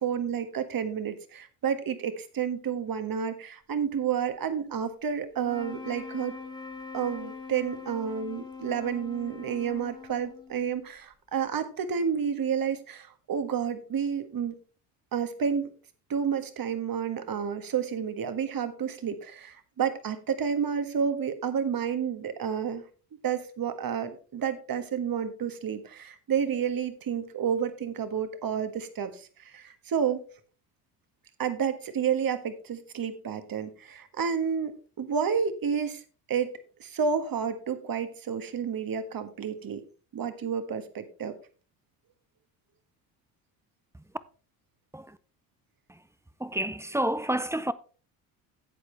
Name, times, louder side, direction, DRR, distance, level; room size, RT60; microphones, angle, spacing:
voice 1, 0.0-6.3 6.9-14.6 15.1-15.7 16.1-22.8 23.2-30.2 31.4-36.0 36.3-39.8 40.1-41.4, right 7 dB, 45° right, 1.6 m, -30 dB
sound 1, 5.4-10.8, left 4 dB, 10° left, 2.2 m, -43 dB
voice 2, 46.4-47.7, right 1 dB, 5° right, 0.6 m, -29 dB
11.5 x 8.1 x 3.3 m
supercardioid pair, 65°, 47 cm